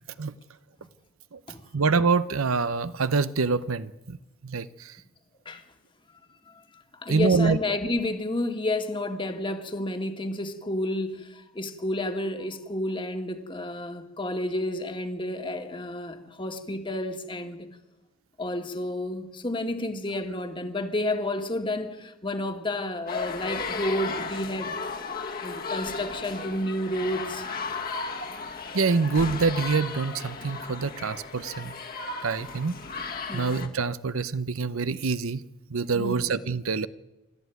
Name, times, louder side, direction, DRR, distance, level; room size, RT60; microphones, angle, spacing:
voice 1, 1.7-4.2 4.4-5.0 7.1-7.6 28.7-31.7 32.2-32.8 33.3-36.9, right 4 dB, 90° right, 0.8 m, -26 dB
voice 2, 6.5-17.7 18.4-24.8 25.4-27.5 33.3-33.6 35.9-36.3, left 1 dB, 25° left, 1.8 m, -31 dB
sound 1, 23.1-33.7, left 4 dB, 45° left, 1.8 m, -35 dB
29.5 x 13.0 x 9.3 m
head